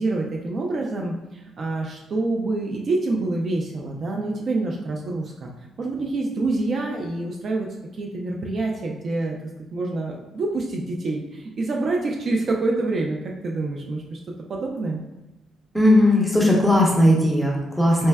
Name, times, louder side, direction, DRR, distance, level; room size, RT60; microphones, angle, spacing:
voice 1, 0.0-5.5 5.8-7.7 8.0-9.4 9.7-13.2 13.4-14.2 14.5-15.0, right 2 dB, 50° right, 0 dB, 0.4 m, -26 dB
voice 2, 15.7-18.1, left 1 dB, 5° right, -3 dB, 0.9 m, -17 dB
4.1 x 2.1 x 2.2 m, 0.98 s
cardioid pair, 90°, 0 cm